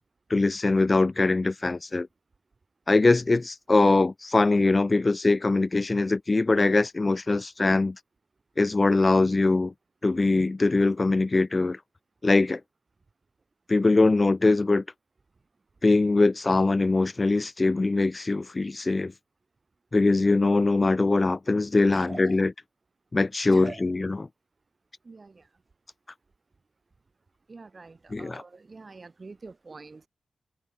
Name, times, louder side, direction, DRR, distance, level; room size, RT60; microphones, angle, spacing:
voice 1, 0.3-2.1 2.9-8.0 8.6-9.7 10.0-11.8 12.2-12.6 13.7-14.8 15.8-19.1 19.9-22.5 23.1-24.3 28.1-28.4, left 3 dB, 35° left, 1.3 m, -22 dB
voice 2, 21.9-22.4 23.5-23.8 25.0-25.5 27.5-30.1, right 3 dB, 45° right, 2.9 m, -44 dB
cardioid pair, 50°, 0 cm